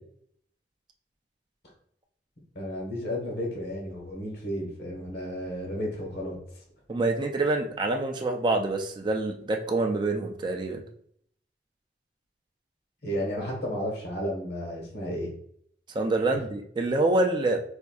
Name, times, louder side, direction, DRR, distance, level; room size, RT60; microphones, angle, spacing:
voice 1, 2.5-6.4 13.0-15.3, equal, 65° left, -1 dB, 1.2 m, -32 dB
voice 2, 6.9-10.8 15.9-17.6, right 2 dB, 25° right, 3 dB, 0.3 m, -26 dB
4.3 x 2.6 x 2.3 m, 0.65 s
head